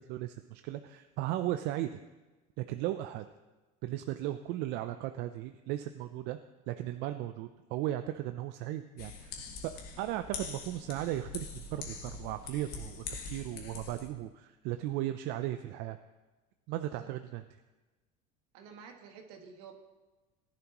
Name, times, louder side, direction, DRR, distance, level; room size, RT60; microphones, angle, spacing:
voice 1, 0.1-2.0 2.6-3.2 3.8-6.4 6.7-9.7 10.0-16.0 16.7-17.4, right 14 dB, 65° right, 9 dB, 0.5 m, -36 dB
sound 1, 9.0-14.1, left 5 dB, 55° left, 1.8 m, -43 dB
voice 2, 18.5-19.8, right 6 dB, 80° right, 3 dB, 1.8 m, -51 dB
17.5 x 11.0 x 3.0 m, 1.2 s
supercardioid pair, 120°, 19 cm